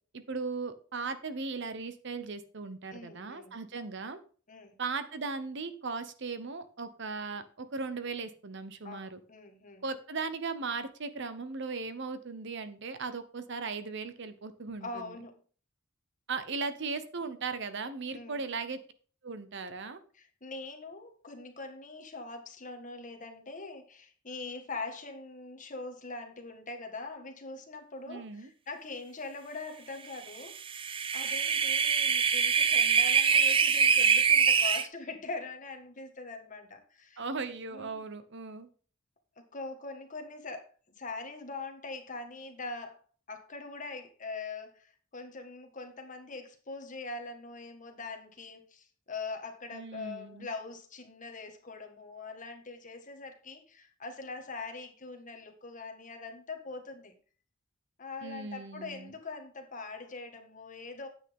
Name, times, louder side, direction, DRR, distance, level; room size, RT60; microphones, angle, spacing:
voice 1, 0.1-4.2 4.8-9.2 9.8-15.2 16.3-18.8 19.2-20.0 28.0-28.5 37.2-38.7 49.7-50.5 58.2-59.1, right 4 dB, 60° right, 12 dB, 0.9 m, -37 dB
voice 2, 2.9-3.6 4.5-4.7 8.8-9.8 14.8-15.3 18.1-18.4 20.1-30.5 31.1-37.2 37.7-38.0 39.5-40.7 41.0-43.0 43.3-57.1 58.0-61.1, left 3 dB, 40° left, 4 dB, 1.7 m, -42 dB
sound 1, 30.6-34.8, right 6 dB, 25° right, 0.5 m, -24 dB
9.4 x 8.3 x 3.6 m, 0.41 s
head